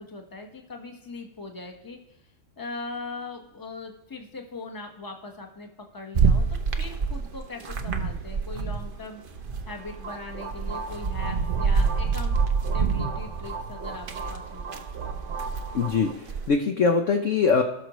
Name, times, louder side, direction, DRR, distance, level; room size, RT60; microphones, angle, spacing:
voice 1, 0.0-2.2 2.6-6.4 6.8-9.2 9.6-12.4 12.7-14.8, left 3 dB, 15° left, 3 dB, 0.9 m, -40 dB
sound 1, 6.1-9.0 9.3-16.5, right 5 dB, 75° right, 0.4 m, -27 dB
sound 2, 9.7-16.1, right 4 dB, 40° right, 1.1 m, -38 dB
voice 2, 15.7-17.6, left 5 dB, 65° left, 4 dB, 0.7 m, -22 dB
17.5 x 6.3 x 3.1 m, 0.94 s
omnidirectional pair, 2.1 m